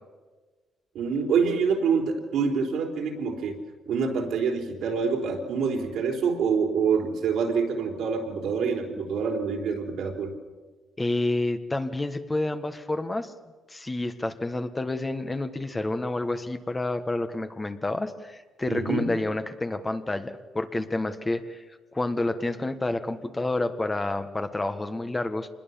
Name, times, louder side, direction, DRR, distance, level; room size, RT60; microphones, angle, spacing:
voice 1, 0.9-3.6 3.9-10.3 18.7-19.1, right 5 dB, 80° right, 1 dB, 3.8 m, -26 dB
voice 2, 11.0-13.3 13.7-21.6 21.9-25.5, left 2 dB, 20° left, 8 dB, 1.4 m, -29 dB
25.5 x 21.0 x 7.1 m, 1.3 s
cardioid pair, 90°, 0 cm